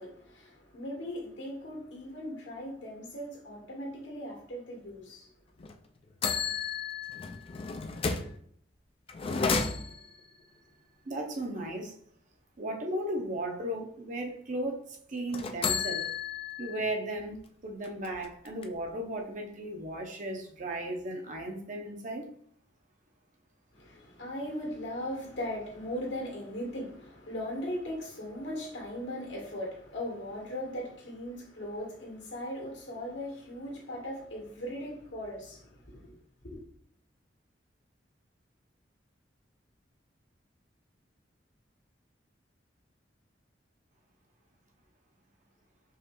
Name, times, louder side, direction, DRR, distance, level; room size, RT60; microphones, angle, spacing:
voice 1, 0.0-5.3 23.7-36.1 36.4-36.6, equal, 80° left, 1.6 m, -38 dB
sound 1, 5.6-5.7 6.2-8.4 9.1-10.2 15.3-16.9 17.3-17.4 17.8-18.9, left 5 dB, 30° left, 0.3 m, -32 dB
voice 2, 11.0-11.9 12.6-16.1 16.6-22.3, right 1 dB, 45° right, 0.7 m, -36 dB
4.8 x 3.0 x 3.0 m
head